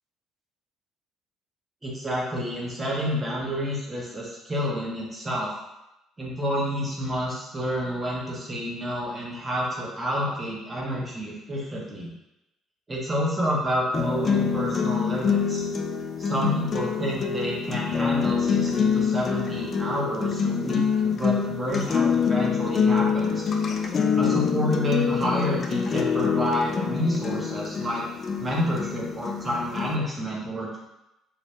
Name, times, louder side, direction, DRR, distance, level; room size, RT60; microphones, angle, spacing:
voice 1, 1.8-5.5 6.2-12.1 12.9-15.6 16.2-23.5 24.2-28.0 28.4-30.8, equal, 20° right, -4 dB, 1.0 m, -29 dB
sound 1, 13.9-29.9, left 6 dB, 40° left, 0.3 m, -25 dB
2.7 x 2.5 x 3.2 m, 0.92 s
supercardioid pair, 90°, 0 cm